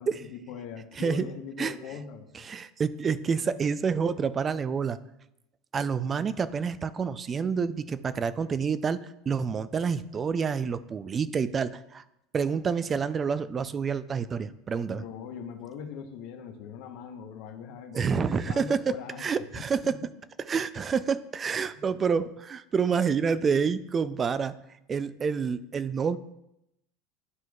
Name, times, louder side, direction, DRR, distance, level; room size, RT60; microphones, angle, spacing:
voice 1, 0.0-2.3 14.9-19.4 19.8-20.0 21.7-21.8, left 7 dB, 65° left, 6 dB, 0.9 m, -41 dB
voice 2, 0.9-1.3 1.6-1.8 2.3-5.0 5.7-9.0 9.3-12.0 12.3-15.0 17.9-20.0 20.5-24.6 24.9-26.2, right 6 dB, 25° right, 15 dB, 0.3 m, -28 dB
11.0 x 4.5 x 2.4 m, 0.83 s
supercardioid pair, 110°, 0 cm